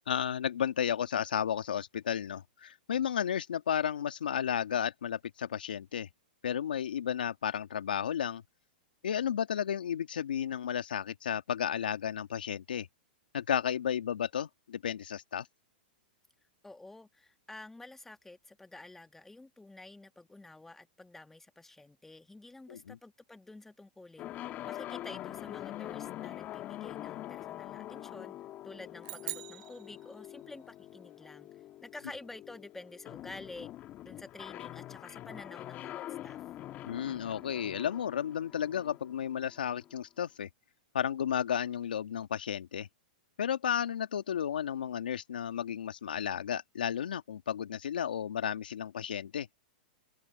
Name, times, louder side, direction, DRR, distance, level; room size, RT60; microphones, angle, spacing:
voice 1, 0.1-6.1 6.4-8.4 9.0-12.9 13.3-15.5 22.7-23.0 36.9-40.5 40.9-42.9 43.4-49.5, left 9 dB, 80° left, 1.7 m, -33 dB
voice 2, 16.6-24.3 24.6-28.4 28.6-31.5 31.8-33.7 34.0-36.4, left 2 dB, 5° left, 1.6 m, -49 dB
sound 1, 24.2-40.0, left 14 dB, 35° left, 1.6 m, -44 dB
sound 2, 29.0-30.7, right 24 dB, 50° right, 0.7 m, -43 dB
hypercardioid pair, 125°, 5 cm